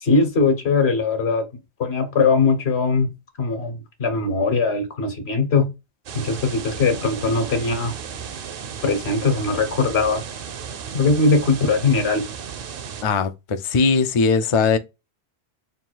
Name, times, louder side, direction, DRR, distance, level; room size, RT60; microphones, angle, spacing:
voice 1, 0.0-1.5 1.8-3.1 3.4-5.7 6.1-7.9 8.8-10.2 10.9-12.2, left 4 dB, 75° left, 1.3 m, -20 dB
sound 1, 6.1-13.0, right 7 dB, 60° right, 0.7 m, -34 dB
voice 2, 13.0-14.8, left 4 dB, 55° left, 0.3 m, -19 dB
3.5 x 2.3 x 4.4 m
omnidirectional pair, 1.1 m